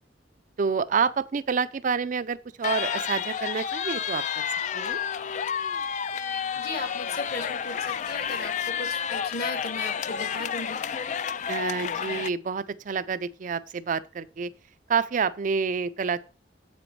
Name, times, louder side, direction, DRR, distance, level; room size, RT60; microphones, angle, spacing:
voice 1, 0.6-4.4 4.7-5.0 11.5-14.5 14.9-16.2, right 5 dB, 45° right, 0.4 m, -28 dB
sound 1, 2.6-12.3, left 7 dB, 40° left, 0.3 m, -30 dB
voice 2, 6.5-10.8, left 2 dB, 60° left, 1.8 m, -36 dB
7.8 x 5.1 x 4.6 m
head